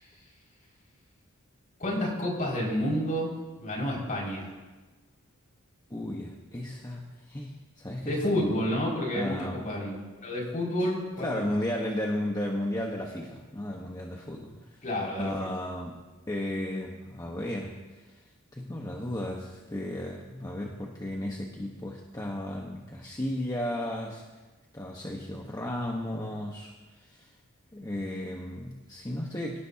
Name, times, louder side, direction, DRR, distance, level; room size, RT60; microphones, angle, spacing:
voice 1, 1.8-4.5 8.1-11.5 14.8-15.3, equal, 40° left, -3 dB, 5.9 m, -30 dB
voice 2, 5.9-8.5 9.1-9.6 10.8-10.9 11.2-14.8 15.2-16.0 16.3-17.8 18.0-18.1 18.5-24.2 24.7-27.3 27.7-29.6, left 1 dB, 15° left, -1 dB, 1.3 m, -34 dB
25.5 x 17.5 x 2.9 m, 1.2 s
head